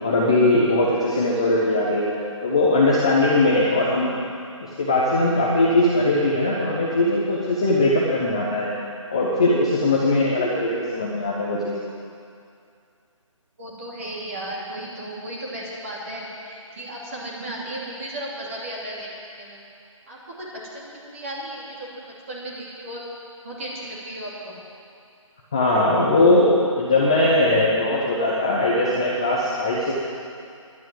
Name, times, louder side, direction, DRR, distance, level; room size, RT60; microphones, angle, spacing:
voice 1, 0.0-4.1 4.6-8.7 9.1-11.7 25.5-29.9, left 2 dB, 10° left, -6 dB, 0.6 m, -20 dB
voice 2, 13.6-19.1 19.4-19.6 20.1-20.5 20.7-23.0 23.4-24.6, right 1 dB, 25° right, -5 dB, 2.9 m, -35 dB
11.5 x 10.5 x 9.1 m, 2.4 s
figure-of-eight pair, 170°, 17 cm